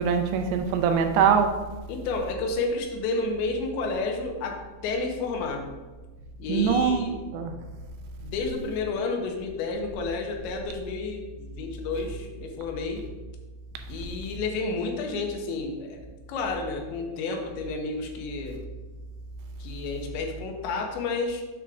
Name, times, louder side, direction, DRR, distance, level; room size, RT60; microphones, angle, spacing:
voice 1, 0.0-1.5 6.5-7.0 7.3-7.5, right 7 dB, 80° right, 5 dB, 3.0 m, -22 dB
voice 2, 1.9-5.7 6.4-7.2 8.2-13.0 13.9-18.6 19.6-21.4, left 3 dB, 80° left, 3 dB, 3.1 m, -31 dB
8.1 x 3.6 x 6.1 m, 1.2 s
omnidirectional pair, 5.3 m